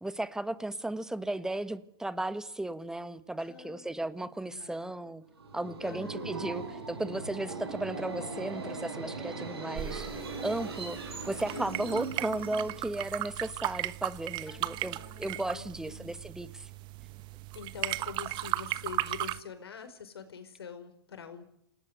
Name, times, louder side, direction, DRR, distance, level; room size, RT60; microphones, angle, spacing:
voice 1, 0.0-5.2 5.5-11.0 11.3-16.7, right 1 dB, 5° right, 15 dB, 1.4 m, -35 dB
voice 2, 3.4-4.9 5.8-6.5 7.5-7.6 11.5-12.1 14.5-16.1 17.5-21.4, left 7 dB, 80° left, 10 dB, 5.2 m, -46 dB
Subway metro underground, 5.3-13.1, right 3 dB, 85° right, 7.9 m, -39 dB
sound 1, 9.7-19.4, right 17 dB, 35° right, 1.2 m, -37 dB
28.5 x 18.5 x 8.1 m, 0.75 s
hypercardioid pair, 110°, 13 cm